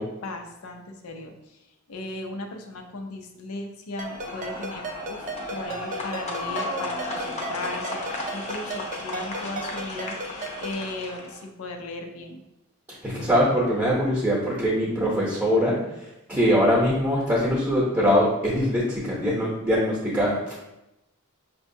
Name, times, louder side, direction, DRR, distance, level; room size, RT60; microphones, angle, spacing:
voice 1, 0.0-1.6 1.9-12.4, left 2 dB, 70° left, 3 dB, 0.5 m, -37 dB
sound 1, 4.0-11.4, left 2 dB, 30° left, 0.7 m, -34 dB
Ringtone, 4.0-10.8, right 3 dB, 35° right, 0.3 m, -37 dB
voice 2, 13.0-15.8 16.3-20.6, equal, 10° right, -6 dB, 0.8 m, -22 dB
5.9 x 2.3 x 2.7 m, 0.92 s
head